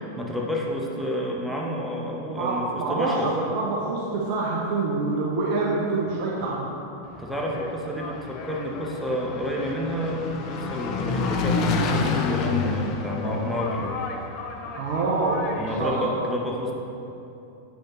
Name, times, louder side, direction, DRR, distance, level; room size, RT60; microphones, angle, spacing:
voice 1, 0.0-3.3 7.2-14.0 15.6-16.7, equal, ahead, -3 dB, 0.9 m, -29 dB
voice 2, 2.4-6.8 14.8-15.4 15.7-16.1, right 3 dB, 45° right, -4 dB, 0.8 m, -26 dB
Engine, 7.1-15.9, left 4 dB, 40° left, 0.5 m, -29 dB
8.0 x 6.4 x 3.1 m, 2.8 s
figure-of-eight pair, 90°, 0 cm